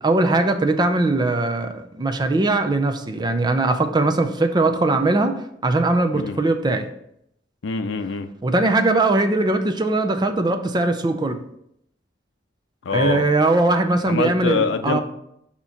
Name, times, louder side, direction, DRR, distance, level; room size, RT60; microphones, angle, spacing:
voice 1, 0.0-5.3 5.6-6.9 8.4-11.4 12.9-15.0, right 2 dB, 25° right, 7 dB, 0.5 m, -20 dB
voice 2, 7.6-8.3 12.8-13.3 14.1-15.0, left 4 dB, 80° left, 10 dB, 0.5 m, -24 dB
6.6 x 2.9 x 5.7 m, 0.75 s
head